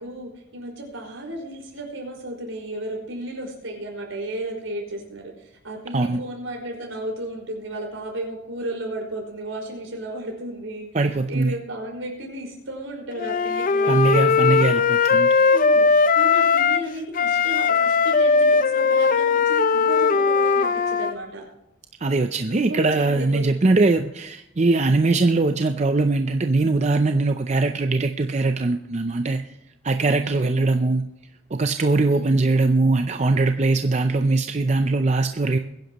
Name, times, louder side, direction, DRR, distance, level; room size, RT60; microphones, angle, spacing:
voice 1, 0.0-14.5 14.7-14.9 15.5-15.9 16.2-21.5 22.5-23.8 30.2-30.6 32.1-32.4, right 1 dB, 85° right, 0 dB, 5.1 m, -34 dB
voice 2, 10.9-11.5 13.9-15.3 22.0-29.4 29.8-31.1 31.5-35.6, right 3 dB, 35° right, 7 dB, 0.5 m, -21 dB
Wind instrument woodwind instrument, 13.2-16.9 17.1-21.1, left 5 dB, 40° left, 0.5 m, -19 dB
21.5 x 10.5 x 3.0 m, 0.83 s
head